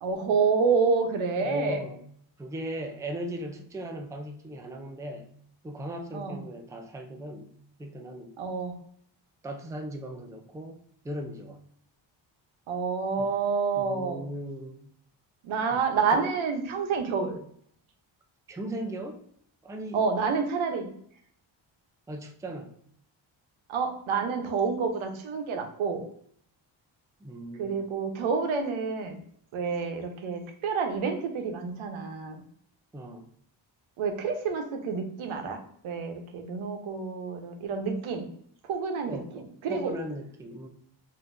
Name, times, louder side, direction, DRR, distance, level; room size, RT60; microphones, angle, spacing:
voice 1, 0.0-1.8 6.1-6.4 8.4-8.7 12.7-14.2 15.4-17.4 19.9-20.9 23.7-26.0 27.6-29.2 29.5-32.4 34.0-35.6 35.8-38.3 38.6-39.9, right 5 dB, 85° right, 0.9 m, -28 dB
voice 2, 1.4-2.0 2.4-5.3 5.6-7.5 7.8-8.3 9.4-11.6 13.2-13.3 13.7-14.8 15.7-15.8 16.1-16.2 18.5-19.2 19.6-20.1 20.7-20.9 22.1-22.7 27.2-27.8 32.9-33.3 39.1-40.7, right 1 dB, 5° right, 0.4 m, -38 dB
5.7 x 2.7 x 2.6 m
cardioid pair, 100°, 47 cm